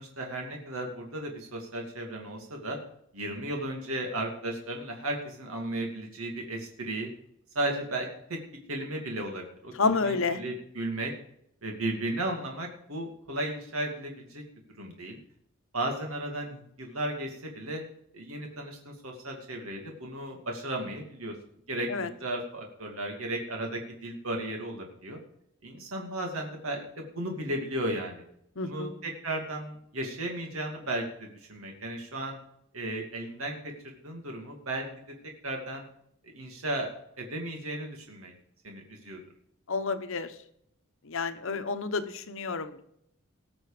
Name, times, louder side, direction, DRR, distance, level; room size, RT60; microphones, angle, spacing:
voice 1, 0.0-2.8 3.1-7.1 7.5-8.4 8.7-11.1 11.6-14.4 14.8-15.2 15.7-17.8 18.1-21.3 21.7-25.2 25.6-28.2 28.6-32.4 32.7-33.6 33.8-34.9 35.4-35.9 36.2-36.9 37.2-38.3 38.6-39.2, right 1 dB, 80° right, 2 dB, 2.5 m, -35 dB
voice 2, 9.8-10.4 21.9-22.1 28.6-28.9 39.7-40.3 41.1-42.8, left 4 dB, 65° left, 10 dB, 1.1 m, -29 dB
19.5 x 6.5 x 5.0 m, 0.72 s
head